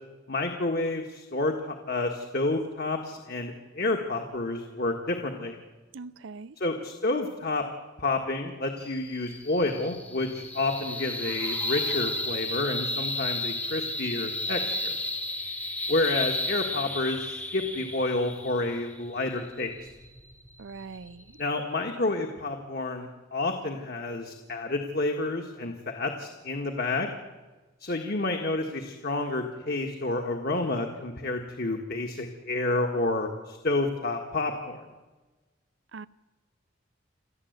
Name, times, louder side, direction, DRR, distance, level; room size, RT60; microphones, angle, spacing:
voice 1, 0.3-5.6 6.6-7.6 8.0-15.0 15.9-19.7 21.4-27.1 27.8-34.9, left 2 dB, 55° left, 1.8 m, -29 dB
voice 2, 5.9-6.6 20.6-21.4 35.9-36.1, right 4 dB, 85° right, 0.6 m, -42 dB
sound 1, 8.8-21.4, left 2 dB, 10° left, 0.9 m, -33 dB
28.5 x 13.0 x 8.2 m
head